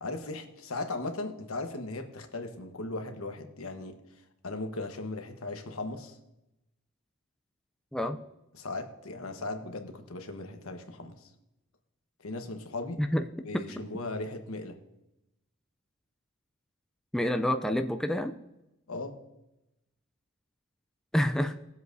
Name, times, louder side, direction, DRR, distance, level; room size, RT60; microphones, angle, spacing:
voice 1, 0.0-4.0 4.4-6.2 8.5-11.3 12.2-13.0 13.4-14.8 18.9-19.2, left 2 dB, 75° left, 6 dB, 1.2 m, -37 dB
voice 2, 17.1-18.3 21.1-21.6, left 1 dB, 5° left, 6 dB, 0.4 m, -27 dB
20.0 x 7.8 x 2.7 m, 0.92 s
head